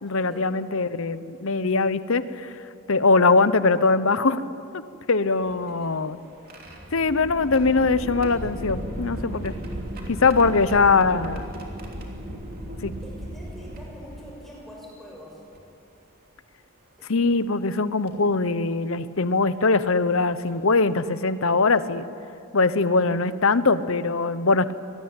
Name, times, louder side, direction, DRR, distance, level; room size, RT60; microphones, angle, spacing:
voice 1, 0.0-2.6 2.9-4.5 4.7-4.8 5.1-6.2 6.9-9.5 10.1-11.4 12.8-12.9 17.0-22.0 22.5-24.7, left 3 dB, 60° left, 14 dB, 0.9 m, -21 dB
sound 1, 5.3-14.6 15.5-15.6 17.1-17.3 18.1-18.3 19.9-20.0 20.4-20.6, equal, 40° right, 3.1 m, -36 dB
voice 2, 5.7-6.0 10.2-10.5 10.8-11.0 13.0-15.4, equal, ahead, -3 dB, 6.6 m, -44 dB
25.0 x 19.5 x 8.9 m, 2.7 s
head